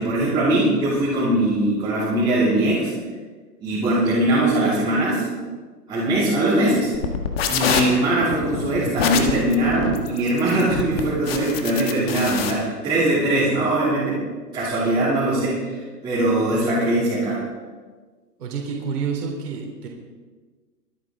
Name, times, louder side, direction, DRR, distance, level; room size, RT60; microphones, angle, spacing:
voice 1, 0.0-2.9 3.6-5.2 5.9-6.9 7.5-14.2 14.5-17.4, right 1 dB, 10° right, -11 dB, 2.7 m, -21 dB
sound 1, 6.9-12.5, left 6 dB, 35° left, 1.5 m, -25 dB
voice 2, 18.4-19.9, right 6 dB, 65° right, -1 dB, 3.6 m, -28 dB
24.0 x 9.2 x 3.7 m, 1.4 s
hypercardioid pair, 160°, 49 cm